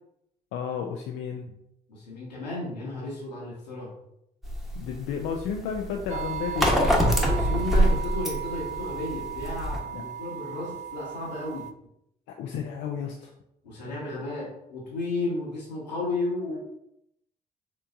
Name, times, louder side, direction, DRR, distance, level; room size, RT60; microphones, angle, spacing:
voice 1, 0.5-1.5 4.7-7.2 9.9-10.0 12.4-13.3, left 7 dB, 60° left, 2 dB, 0.5 m, -32 dB
voice 2, 1.9-3.9 7.2-11.7 13.6-16.6, left 2 dB, 85° left, -5 dB, 1.4 m, -33 dB
sound 1, 4.4-9.8, equal, ahead, 1.1 m, -25 dB
sound 2, 6.1-11.7, right 9 dB, 35° right, 0.4 m, -36 dB
5.7 x 3.4 x 2.6 m, 0.79 s
figure-of-eight pair, 45°, 21 cm